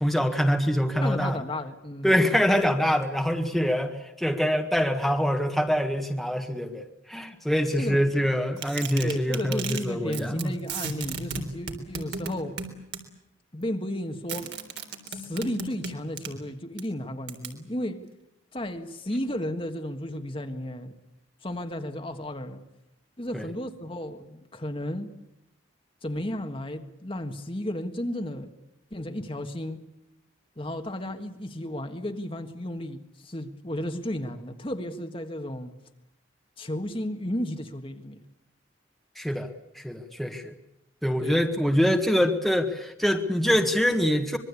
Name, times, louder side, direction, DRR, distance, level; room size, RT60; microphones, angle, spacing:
voice 1, 0.0-1.4 2.0-10.6 23.3-23.5 39.2-39.5 39.8-40.5 41.0-44.4, equal, ahead, 1.6 m, -25 dB
voice 2, 1.0-2.3 7.8-8.0 9.0-12.6 13.5-14.5 15.1-18.1 18.5-20.9 21.4-22.6 23.2-25.1 26.0-28.5 28.9-29.8 30.6-35.7 36.6-38.2 41.2-41.5, left 1 dB, 25° left, 1.6 m, -33 dB
sound 1, 8.6-9.8 10.1-13.0 14.3-16.3 16.8-16.9 17.3-17.5, right 5 dB, 55° right, 3.6 m, -34 dB
25.5 x 22.5 x 8.4 m
head